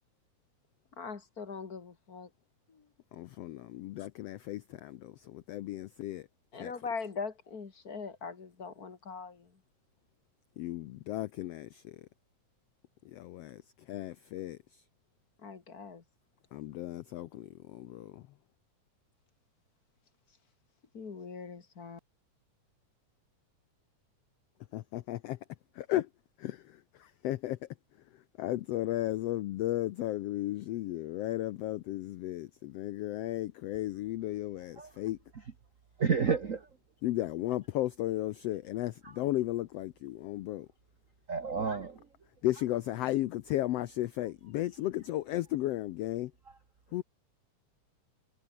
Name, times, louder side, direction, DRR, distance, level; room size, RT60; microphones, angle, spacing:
voice 1, 1.0-2.3 2.7-2.9 6.5-9.5 15.4-16.0 20.9-22.0, left 5 dB, 35° left, 2.0 m, -41 dB
voice 2, 3.1-6.3 6.6-6.7 10.6-12.1 13.0-13.6 13.9-14.8 16.5-18.2 24.7-25.4 25.7-26.1 26.4-27.6 28.4-35.2 37.0-40.7 42.4-46.3 46.9-47.0, left 15 dB, 80° left, 1.4 m, -35 dB
voice 3, 36.0-36.7 41.3-42.0, right 5 dB, 70° right, 0.7 m, -30 dB
omnidirectional pair, 3.6 m